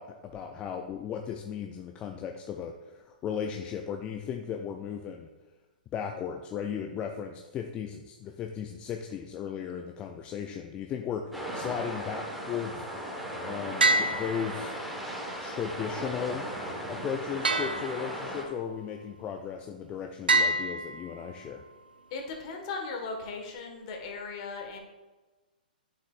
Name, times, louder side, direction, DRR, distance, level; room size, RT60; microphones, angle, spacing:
voice 1, 0.0-5.3 5.9-11.2 11.5-12.8 13.4-14.8 15.4-16.5 16.9-21.6, left 7 dB, 25° left, 4 dB, 0.4 m, -36 dB
sound 1, 11.3-18.4, equal, ahead, 1.2 m, -37 dB
sound 2, 13.8-15.1 17.4-18.5 20.3-21.5, right 2 dB, 85° right, 0.7 m, -27 dB
voice 2, 22.1-24.8, left 4 dB, 45° left, 3 dB, 1.5 m, -37 dB
9.0 x 6.8 x 2.5 m, 1.2 s
hypercardioid pair, 125°, 5 cm